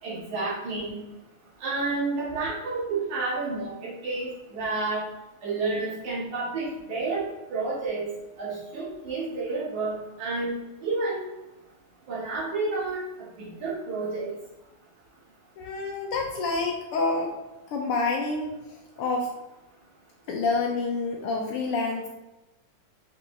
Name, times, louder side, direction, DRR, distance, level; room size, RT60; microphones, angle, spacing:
voice 1, 0.0-1.0 1.6-5.0 5.4-7.2 7.5-8.1 8.4-10.5 10.8-11.2 12.1-14.3, right 3 dB, 70° right, -8 dB, 3.1 m, -30 dB
voice 2, 15.6-17.4 17.7-19.3 20.3-22.1, left 3 dB, 75° left, 0 dB, 1.3 m, -28 dB
6.7 x 5.2 x 3.3 m, 1.0 s
omnidirectional pair, 3.4 m